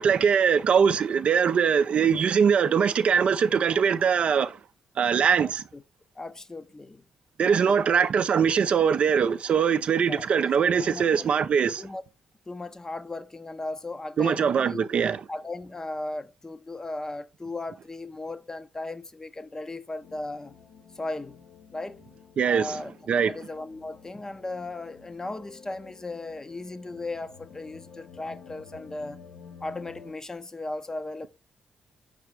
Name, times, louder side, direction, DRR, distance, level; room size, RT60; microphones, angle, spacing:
voice 1, 0.0-4.6 5.0-5.6 7.4-11.9 14.2-15.2 22.4-22.8 23.1-23.3, right 7 dB, 55° right, 0.3 m, -22 dB
voice 2, 5.4-5.8 6.2-7.0 7.5-8.0 10.1-10.2 10.8-11.1 11.8-12.0 12.5-14.8 15.3-20.6 21.0-21.4 21.7-22.0 22.5-22.9 23.3-29.2 29.6-31.3, left 2 dB, 25° left, 0.5 m, -36 dB
sound 1, 20.0-30.1, left 6 dB, 75° left, 0.7 m, -50 dB
4.7 x 3.4 x 3.2 m
hypercardioid pair, 45°, 2 cm